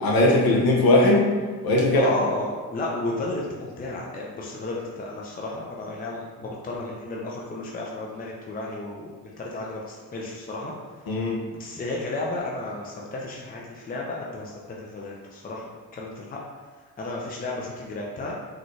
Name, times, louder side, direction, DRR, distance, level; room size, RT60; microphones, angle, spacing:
voice 1, 0.0-1.3 1.6-2.1 11.1-11.4, left 1 dB, 45° left, -1 dB, 0.9 m, -19 dB
voice 2, 1.9-10.7 11.6-16.4 17.0-18.4, left 2 dB, 20° left, -3 dB, 0.6 m, -33 dB
3.9 x 2.3 x 3.2 m, 1.4 s
hypercardioid pair, 50°, 48 cm